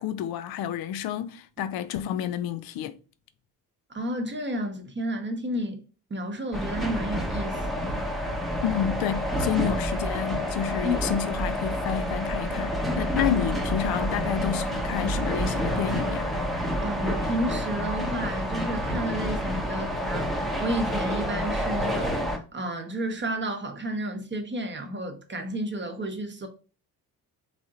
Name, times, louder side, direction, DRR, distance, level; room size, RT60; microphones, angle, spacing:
voice 1, 0.0-3.0 8.6-16.3, left 10 dB, 55° left, 0.5 m, -30 dB
voice 2, 3.9-5.8 6.1-8.1 9.5-9.6 10.8-11.0 16.8-26.5, equal, 25° right, 1.0 m, -31 dB
sound 1, 6.5-22.4, equal, ahead, 0.9 m, -28 dB
3.6 x 3.3 x 2.5 m
hypercardioid pair, 45°, 46 cm